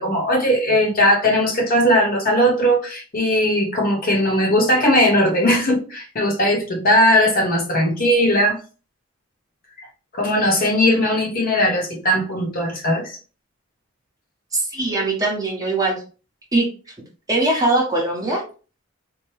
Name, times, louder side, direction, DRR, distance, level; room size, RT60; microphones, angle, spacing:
voice 1, 0.0-8.6 9.8-9.9 10.1-13.2, equal, 40° left, 0.9 m, -18 dB
voice 2, 14.5-16.0 16.5-16.7 17.3-18.4, right 2 dB, 15° right, 1.0 m, -21 dB
4.5 x 2.1 x 3.1 m
head